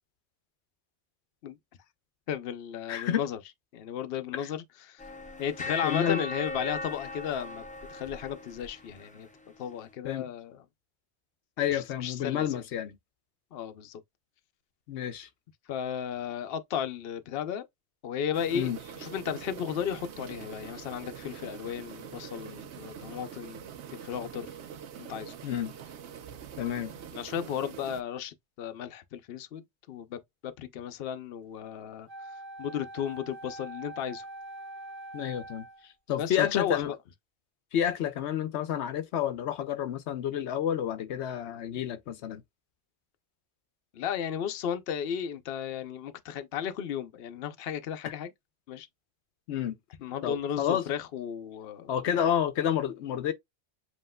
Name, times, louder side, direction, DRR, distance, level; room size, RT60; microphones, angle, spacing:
voice 1, 2.3-3.4 3.7-5.0 5.4-7.6 7.9-9.3 9.6-10.6 11.7-12.6 13.5-14.0 15.7-17.6 18.0-18.7 19.0-23.6 23.9-24.5 25.0-25.3 27.1-32.1 32.6-34.2 36.2-36.9 43.9-48.3 48.7-48.9 50.0-52.3, left 8 dB, 65° left, 0.8 m, -34 dB
voice 2, 2.9-3.2 4.4-4.5 5.8-6.2 10.0-10.2 11.6-13.0 14.9-15.3 18.5-18.8 25.4-25.7 26.6-26.9 35.1-36.9 37.7-42.4 49.5-49.8 50.2-50.8 51.9-53.3, left 10 dB, 90° left, 0.9 m, -30 dB
sound 1, 5.0-9.3, left 2 dB, 10° left, 0.5 m, -38 dB
sound 2, 18.3-28.0, right 8 dB, 90° right, 1.0 m, -44 dB
Wind instrument woodwind instrument, 32.1-35.9, right 2 dB, 35° right, 1.8 m, -44 dB
7.5 x 2.9 x 2.2 m
omnidirectional pair, 1.1 m